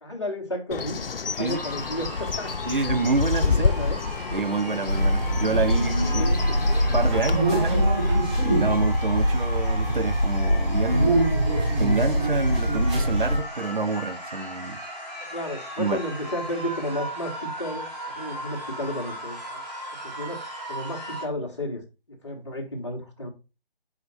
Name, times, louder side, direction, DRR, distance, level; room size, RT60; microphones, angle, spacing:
voice 1, 0.0-1.0 1.4-2.6 3.4-4.0 6.0-6.6 15.2-19.6 20.0-20.4 20.7-21.8 22.1-23.3, left 1 dB, 30° left, 1.4 m, -32 dB
Bird, 0.7-7.4, left 5 dB, 70° left, 0.5 m, -29 dB
sound 1, 1.5-21.3, equal, 10° left, 1.1 m, -37 dB
voice 2, 2.7-3.6 4.3-6.2 6.6-6.7 6.9-7.9 8.4-11.2 11.8-14.8 15.8-16.0, right 3 dB, 60° right, 0.7 m, -27 dB
sound 2, 4.9-13.4, equal, 25° right, 3.0 m, -23 dB
5.8 x 5.0 x 4.2 m
figure-of-eight pair, 160°, 30 cm